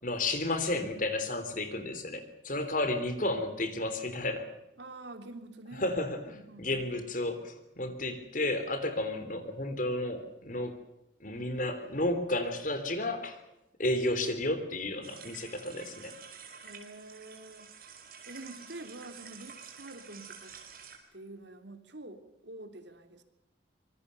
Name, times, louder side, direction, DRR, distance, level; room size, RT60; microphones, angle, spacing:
voice 1, 0.0-4.5 5.8-10.8 11.2-13.4 13.8-16.1, left 2 dB, 45° left, 9 dB, 3.5 m, -32 dB
voice 2, 4.8-5.9 6.3-7.1 16.6-17.7 18.3-20.6 21.1-23.2, right 2 dB, 70° right, 7 dB, 3.0 m, -47 dB
sound 1, 15.0-21.0, right 7 dB, 50° right, 5.1 m, -49 dB
25.5 x 22.0 x 6.8 m, 0.90 s
head